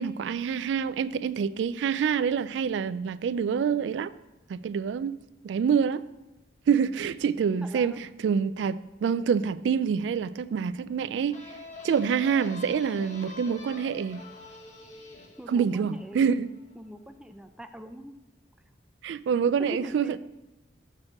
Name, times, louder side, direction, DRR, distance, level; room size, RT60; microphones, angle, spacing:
voice 1, 0.0-4.1 4.5-5.2 5.4-6.0 6.7-11.4 11.8-14.2 15.5-16.5 19.0-20.2, right 7 dB, 90° right, 0.3 m, -26 dB
voice 2, 7.6-8.0 15.4-16.3 16.7-18.1 19.6-20.2, equal, 5° right, 0.4 m, -42 dB
sound 1, 11.3-16.8, left 3 dB, 40° left, 1.2 m, -46 dB
6.5 x 6.2 x 5.9 m
head